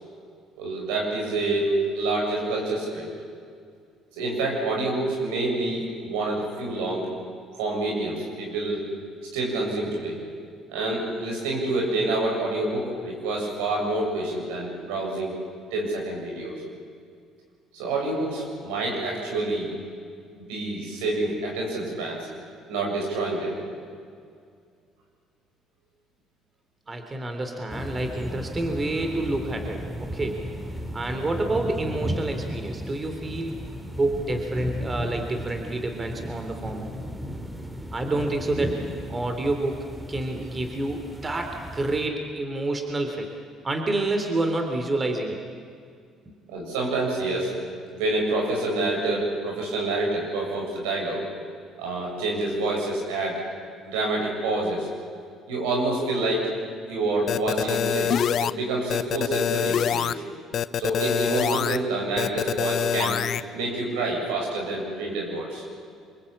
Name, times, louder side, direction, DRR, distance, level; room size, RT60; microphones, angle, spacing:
voice 1, 0.6-3.1 4.1-7.1 7.6-8.8 9.3-10.2 10.7-15.3 15.7-16.5 17.7-19.7 20.3-22.3 22.7-23.6 46.5-47.5 47.9-51.2 51.8-53.4 53.8-54.9 55.5-56.5 56.9-60.2 60.8-63.2 63.5-65.6, right 2 dB, 80° right, -1 dB, 7.7 m, -27 dB
voice 2, 26.9-30.4 30.9-33.6 33.9-36.9 37.9-38.8 39.1-43.3 43.6-45.4, right 2 dB, 30° right, 5 dB, 3.4 m, -28 dB
sound 1, 27.7-42.1, equal, 15° right, 2.7 m, -35 dB
sound 2, 57.3-58.5 58.9-60.1 60.5-61.8 62.2-63.4, left 9 dB, 55° left, 0.7 m, -25 dB
25.5 x 23.0 x 8.7 m, 2.2 s
hypercardioid pair, 60°, 0 cm